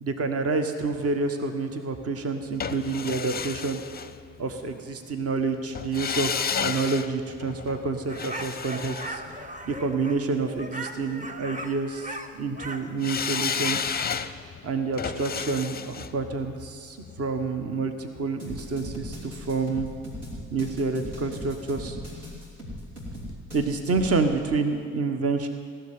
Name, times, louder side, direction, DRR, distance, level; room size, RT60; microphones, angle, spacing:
voice 1, 0.0-3.8 4.4-9.2 9.7-14.1 14.6-19.9 20.5-22.0 23.5-25.5, right 4 dB, 40° right, 7 dB, 1.3 m, -28 dB
sound 1, 2.6-4.7 5.8-10.0 13.0-18.0 18.3-18.4, left 7 dB, 25° left, 0.6 m, -32 dB
sound 2, 8.1-12.9, right 1 dB, 20° right, 1.1 m, -38 dB
sound 3, 18.4-24.2, left 1 dB, 75° right, 3.3 m, -39 dB
16.0 x 7.0 x 9.3 m, 2.4 s
figure-of-eight pair, 40°, 38 cm